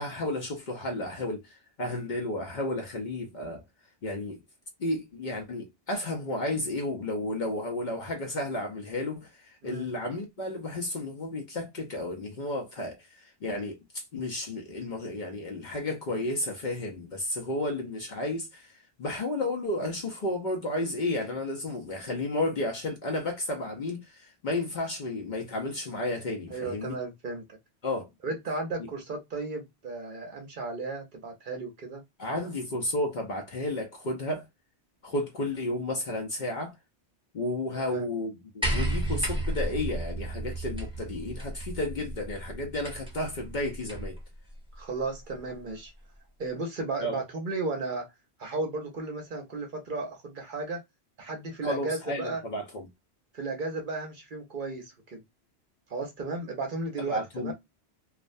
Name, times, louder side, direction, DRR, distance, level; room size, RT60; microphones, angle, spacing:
voice 1, 0.0-3.6 4.0-4.4 4.8-27.0 27.8-28.1 28.8-28.9 32.2-34.5 35.0-36.7 37.3-44.2 47.0-47.2 51.6-52.9 57.0-57.5, left 1 dB, 55° left, 0.6 m, -32 dB
voice 2, 26.5-27.6 28.2-32.0 37.7-38.1 44.7-45.9 46.4-48.1 48.4-50.8 51.2-52.4 53.3-55.2 55.9-57.5, right 3 dB, 55° right, 0.7 m, -34 dB
sound 1, 38.6-44.2 45.3-45.4, right 1 dB, 5° right, 0.7 m, -33 dB
2.4 x 2.1 x 2.5 m
omnidirectional pair, 1.1 m